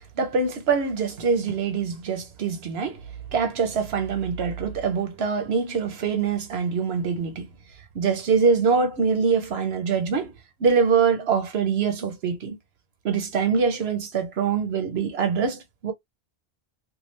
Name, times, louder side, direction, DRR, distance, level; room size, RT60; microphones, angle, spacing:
voice 1, 0.2-3.0 3.3-7.5 7.9-10.3 10.6-12.6 13.0-15.9, right 5 dB, 85° right, 1.0 m, -24 dB
2.4 x 2.3 x 3.1 m
omnidirectional pair, 1.0 m